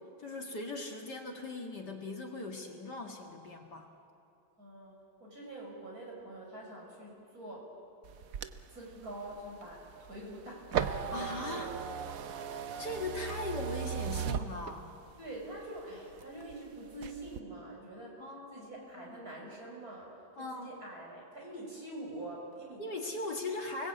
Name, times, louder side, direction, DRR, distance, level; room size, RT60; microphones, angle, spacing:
voice 1, 0.2-3.9 11.1-11.7 12.8-14.9 18.2-19.2 20.4-20.7 22.8-23.9, left 2 dB, 50° left, 1 dB, 2.5 m, -39 dB
voice 2, 4.6-7.7 8.7-11.9 12.3-12.6 15.2-20.1 20.4-22.8, right 1 dB, 45° right, -2 dB, 6.8 m, -45 dB
sound 1, 8.0-15.1 15.6-16.6 16.9-17.4, right 8 dB, 65° right, 0.9 m, -38 dB
29.0 x 20.0 x 8.5 m, 2.7 s
omnidirectional pair, 2.3 m